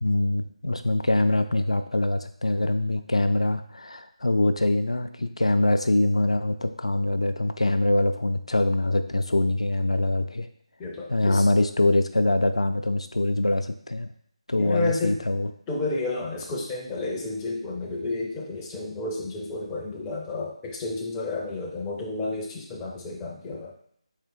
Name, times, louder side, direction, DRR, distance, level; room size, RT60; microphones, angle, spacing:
voice 1, 0.0-10.5 11.1-14.1 14.5-15.5, left 2 dB, 70° left, 8 dB, 0.4 m, -24 dB
voice 2, 10.8-11.4 14.5-15.2 15.7-23.7, left 3 dB, 10° left, -2 dB, 0.4 m, -31 dB
4.1 x 2.9 x 4.5 m, 0.68 s
figure-of-eight pair, 160°, 3 cm